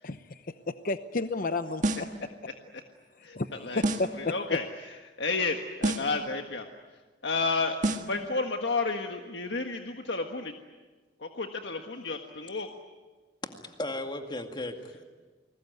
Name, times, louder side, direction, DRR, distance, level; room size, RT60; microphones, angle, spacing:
voice 1, 0.0-1.8 3.3-3.5 3.8-4.6, left 3 dB, 50° left, 10 dB, 0.9 m, -31 dB
sound 1, 1.8-2.2 3.8-4.2 5.8-6.2 7.8-8.2, right 2 dB, 45° right, 1.7 m, -29 dB
voice 2, 3.2-3.8 4.2-4.7 5.2-6.6 7.2-10.5 11.2-12.7, left 3 dB, 70° left, 4 dB, 1.6 m, -31 dB
voice 3, 13.4-15.0, left 1 dB, 25° left, 5 dB, 2.1 m, -36 dB
29.5 x 20.5 x 9.5 m, 1.3 s
head